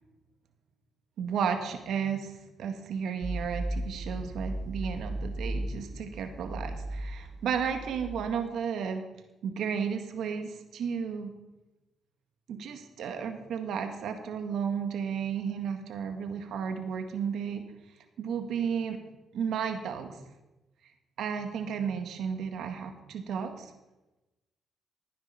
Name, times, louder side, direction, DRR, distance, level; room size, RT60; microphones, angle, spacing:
voice 1, 1.2-2.3 2.6-9.0 9.4-11.3 12.5-17.6 18.2-19.0 19.3-20.2 21.2-23.7, right 7 dB, 75° right, 6 dB, 1.9 m, -33 dB
sound 1, 3.2-8.4, right 1 dB, 25° right, 2.5 m, -36 dB
15.0 x 9.8 x 6.0 m, 1.0 s
cardioid pair, 90°, 0 cm